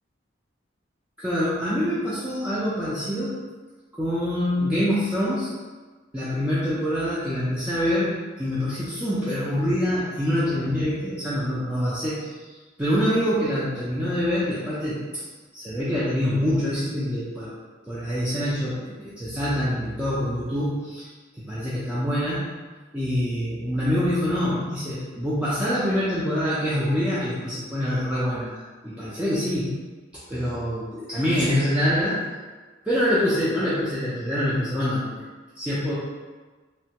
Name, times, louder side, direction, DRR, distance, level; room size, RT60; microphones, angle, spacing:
voice 1, 1.2-3.4 4.0-5.5 6.1-17.5 17.8-18.8 19.2-22.5 22.9-29.8 30.3-32.2 32.9-35.1 35.6-35.9, equal, 5° right, -11 dB, 0.4 m, -25 dB
3.2 x 2.2 x 2.8 m, 1.4 s
head